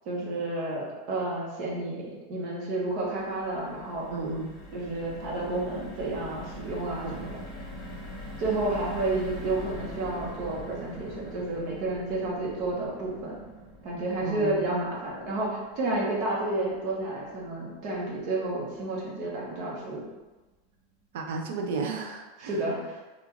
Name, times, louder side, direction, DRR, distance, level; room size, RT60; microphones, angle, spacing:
voice 1, 0.1-4.1 4.7-7.3 8.4-13.4 13.8-20.0 22.4-23.0, right 2 dB, 45° right, -4 dB, 1.0 m, -31 dB
sound 1, 2.9-19.2 19.6-19.7 20.0-20.2, equal, 20° left, 1.2 m, -44 dB
voice 2, 4.1-4.5 7.0-7.3 9.3-9.4 14.2-14.6 21.1-22.5, right 3 dB, 70° right, 3 dB, 0.5 m, -33 dB
3.6 x 2.4 x 3.1 m, 1.2 s
supercardioid pair, 160°, 0 cm